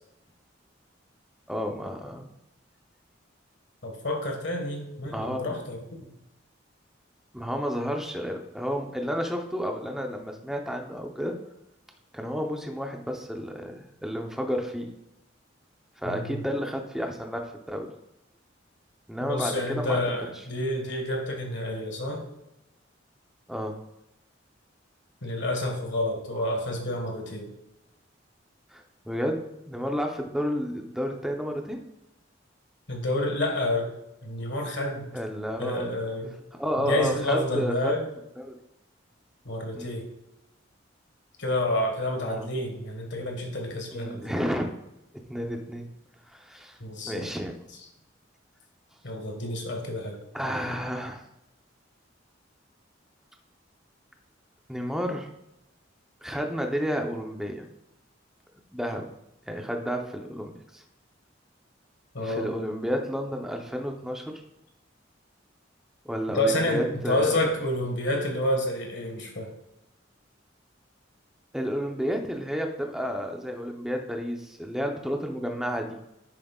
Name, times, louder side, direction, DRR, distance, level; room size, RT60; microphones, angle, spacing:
voice 1, 1.5-2.3 5.1-5.6 7.3-11.3 12.1-14.9 16.0-17.9 19.1-20.0 23.5-23.8 28.7-31.8 35.1-35.9 36.5-38.0 38.4-38.5 39.7-39.9 42.2-42.5 43.9-44.7 45.3-45.9 46.3-46.8 47.0-47.6 50.3-51.2 54.7-55.3 56.2-57.7 58.7-59.1 59.5-60.8 62.2-64.4 66.0-67.5 71.5-76.0, equal, 5° right, 3 dB, 0.8 m, -31 dB
voice 2, 3.8-5.8 16.1-16.4 19.2-22.3 25.2-27.5 32.9-33.9 34.2-35.1 35.6-36.3 36.8-38.1 39.5-40.1 41.4-44.2 46.8-47.3 49.0-50.2 62.1-62.5 66.3-69.5, left 1 dB, 65° left, 2 dB, 1.7 m, -29 dB
10.0 x 7.5 x 2.4 m, 0.90 s
head